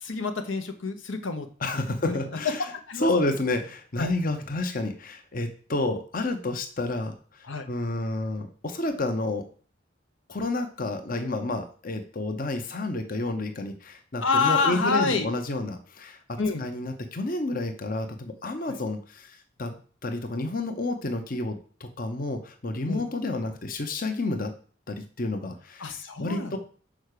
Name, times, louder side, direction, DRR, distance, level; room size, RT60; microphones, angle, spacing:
voice 1, 0.0-1.5 1.7-2.2 2.9-3.1 4.0-4.1 7.5-7.6 14.2-15.3 16.4-16.6 18.7-18.8 22.9-23.0 25.8-26.5, left 4 dB, 85° left, 7 dB, 1.0 m, -27 dB
voice 2, 1.6-2.7 3.0-9.5 10.3-19.7 20.0-24.6 24.9-26.6, left 2 dB, 45° left, 6 dB, 0.9 m, -30 dB
6.1 x 4.7 x 6.7 m, 0.42 s
head